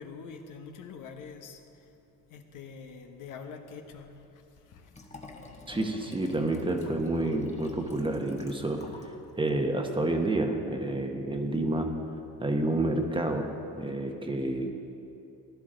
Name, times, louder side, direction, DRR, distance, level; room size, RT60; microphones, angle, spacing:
voice 1, 0.0-1.9 2.3-4.9, left 5 dB, 60° left, 5 dB, 1.1 m, -45 dB
Liquid, 4.9-9.2 9.5-9.6, left 3 dB, 20° left, 1.2 m, -49 dB
voice 2, 5.7-8.8 9.4-11.9 12.4-13.5 13.8-14.7, right 2 dB, 15° right, 3 dB, 1.1 m, -29 dB
15.0 x 11.0 x 3.9 m, 2.8 s
cardioid pair, 100°, 36 cm